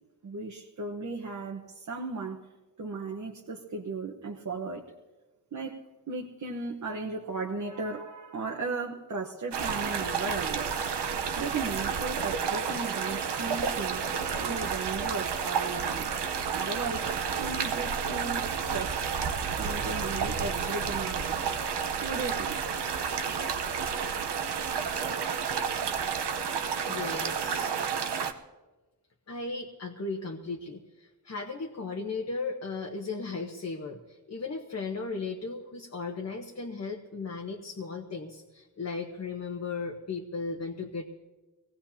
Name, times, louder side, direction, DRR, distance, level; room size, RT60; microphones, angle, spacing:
voice 1, 0.2-2.4 2.8-4.8 5.5-5.8 6.1-10.7 11.4-14.0 14.4-16.1 16.5-19.1 19.5-21.5 22.0-22.6, right 3 dB, 45° right, 0 dB, 1.2 m, -36 dB
sound 1, 9.5-28.3, right 6 dB, 85° right, 1.1 m, -31 dB
voice 2, 26.9-27.7 29.3-41.1, left 4 dB, 40° left, 2 dB, 1.2 m, -36 dB
24.5 x 17.5 x 2.9 m, 1.2 s
wide cardioid pair, 140°, 40 cm